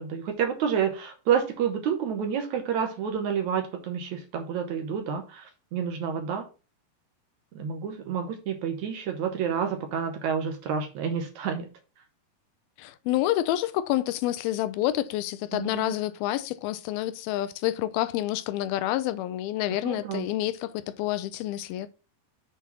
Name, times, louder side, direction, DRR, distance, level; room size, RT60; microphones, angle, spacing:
voice 1, 0.0-6.5 7.5-11.7 15.5-16.0 19.7-20.3, right 7 dB, 65° right, 2.0 m, -29 dB
voice 2, 12.8-21.9, left 14 dB, 90° left, 2.5 m, -28 dB
7.5 x 4.1 x 6.0 m
omnidirectional pair, 4.3 m